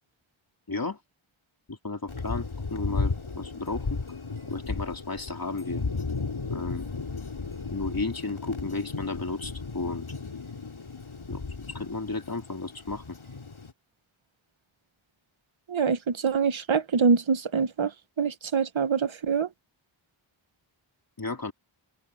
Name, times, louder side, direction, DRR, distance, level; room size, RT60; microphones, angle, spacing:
voice 1, 0.7-1.0 1.7-4.0 4.5-5.8 6.5-6.8 7.7-10.0 11.3-13.2 21.2-21.5, left 3 dB, 45° left, 3.3 m, -33 dB
Thunder, 2.1-13.7, left 4 dB, 80° left, 3.6 m, -35 dB
voice 2, 15.7-17.9 18.2-19.5, right 5 dB, 75° right, 1.2 m, -25 dB
wide cardioid pair, 65°, 48 cm